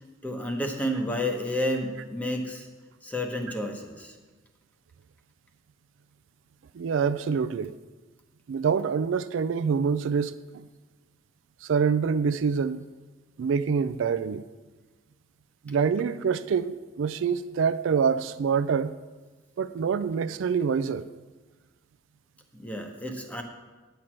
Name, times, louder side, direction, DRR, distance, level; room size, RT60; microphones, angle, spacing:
voice 1, 0.2-2.7 3.0-4.2 22.5-23.4, left 1 dB, 10° left, 1.0 m, -30 dB
voice 2, 6.7-7.7 8.5-10.6 11.6-12.8 13.4-14.4 15.7-18.9 19.6-21.1, right 6 dB, 75° right, 0.4 m, -26 dB
9.9 x 4.6 x 7.4 m
head